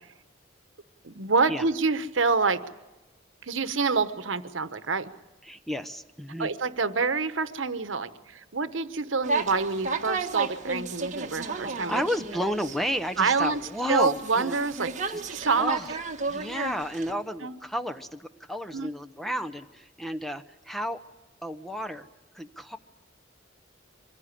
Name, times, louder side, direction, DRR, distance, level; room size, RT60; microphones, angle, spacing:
voice 1, 1.0-2.6 3.4-5.1 6.4-12.0 13.2-13.6 13.9-14.9 15.3-15.7 17.4-17.5 18.7-18.9, right 4 dB, 75° right, 12 dB, 1.1 m, -27 dB
voice 2, 5.4-6.5 11.9-14.6 15.1-15.2 15.5-15.9 16.3-21.0 21.4-22.1 22.3-22.8, equal, ahead, 8 dB, 0.8 m, -32 dB
sound 1, 9.2-17.1, right 4 dB, 40° right, 1.7 m, -33 dB
24.5 x 16.5 x 10.0 m, 1.1 s
head